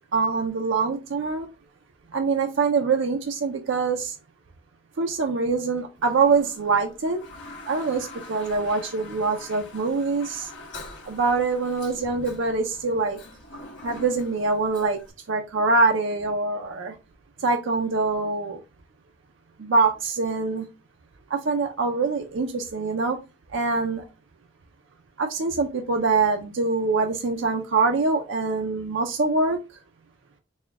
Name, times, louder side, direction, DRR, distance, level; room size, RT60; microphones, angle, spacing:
voice 1, 0.1-1.5 2.1-4.2 5.0-7.2 7.7-10.5 11.1-13.2 13.8-15.0 15.3-16.9 17.4-18.6 19.6-20.7 21.3-23.2 23.5-24.0 25.2-29.6, right 4 dB, 65° right, 4 dB, 0.5 m, -24 dB
Toilet flush, 6.0-15.1, left 2 dB, 65° left, 1.3 m, -44 dB
4.2 x 2.2 x 3.5 m, 0.27 s
head